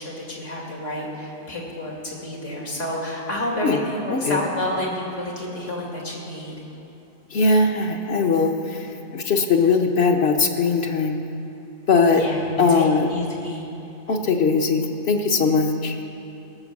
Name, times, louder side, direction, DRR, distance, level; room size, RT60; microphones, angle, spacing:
voice 1, 0.0-6.6 12.1-13.6, left 1 dB, 85° left, -2 dB, 2.7 m, -29 dB
voice 2, 7.3-8.9 9.1-11.2 11.9-12.2 12.6-13.1 14.1-16.0, left 4 dB, 60° left, 3 dB, 1.2 m, -20 dB
17.5 x 6.8 x 7.3 m, 2.8 s
omnidirectional pair, 1.2 m